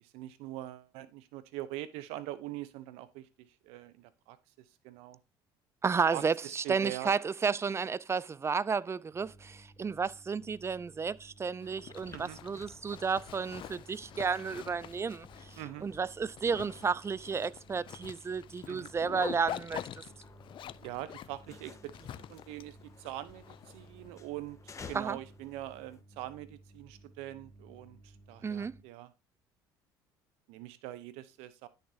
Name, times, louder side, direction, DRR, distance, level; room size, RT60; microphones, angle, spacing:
voice 1, 0.0-4.4 4.8-5.2 6.1-7.1 12.1-12.4 15.6-15.9 18.7-18.9 20.8-29.1 30.5-31.7, right 14 dB, 75° right, 0.8 m, -43 dB
voice 2, 5.8-15.6 15.8-19.9 24.9-25.2 28.4-28.7, right 5 dB, 25° right, 0.4 m, -32 dB
sound 1, 9.1-28.8, right 2 dB, 45° right, 5.7 m, -57 dB
Zipper (clothing), 11.6-24.1, left 11 dB, 50° left, 0.5 m, -46 dB
sound 2, 12.0-26.0, left 5 dB, 30° left, 1.3 m, -56 dB
11.0 x 6.6 x 2.8 m
hypercardioid pair, 70°, 11 cm